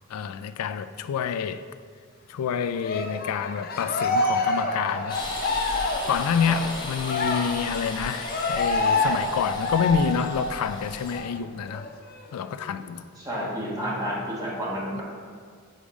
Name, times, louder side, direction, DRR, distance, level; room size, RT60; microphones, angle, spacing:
voice 1, 0.1-1.6 2.3-5.2 6.1-11.9 12.3-13.0, left 7 dB, 90° left, 0.3 m, -28 dB
Cheering, 2.8-10.8 11.1-11.3 11.7-12.7, left 2 dB, 45° left, 0.6 m, -28 dB
sound 1, 5.1-11.2, left 2 dB, 20° left, 0.9 m, -36 dB
voice 2, 13.2-15.0, equal, 15° right, 1.2 m, -30 dB
5.2 x 5.0 x 5.1 m
head